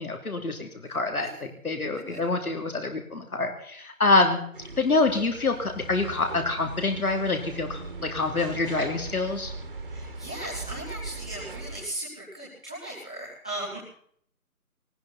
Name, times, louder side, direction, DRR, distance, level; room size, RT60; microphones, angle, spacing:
voice 1, 0.0-4.4 4.8-9.5, left 3 dB, 75° left, 4 dB, 3.1 m, -26 dB
sound 1, 4.5-11.9, right 3 dB, 35° right, 1.8 m, -40 dB
voice 2, 9.9-13.8, right 1 dB, 5° left, -9 dB, 1.0 m, -37 dB
18.5 x 17.0 x 4.2 m, 0.62 s
figure-of-eight pair, 165°, 45 cm